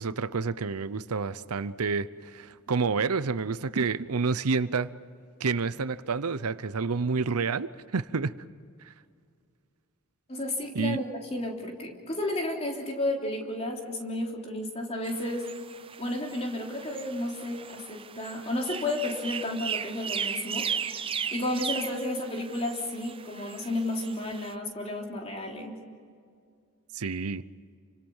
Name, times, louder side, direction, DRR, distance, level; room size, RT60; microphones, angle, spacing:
voice 1, 0.0-4.9 5.4-7.7 7.9-8.3 8.8-8.9 10.7-11.0 26.9-27.4, right 4 dB, 85° right, 15 dB, 0.7 m, -29 dB
voice 2, 10.3-15.5 16.0-20.7 21.1-25.8, left 1 dB, 25° left, 0 dB, 3.6 m, -32 dB
sound 1, 15.1-24.5, right 7 dB, 25° right, 0.6 m, -37 dB
29.5 x 25.5 x 5.6 m, 2.2 s
head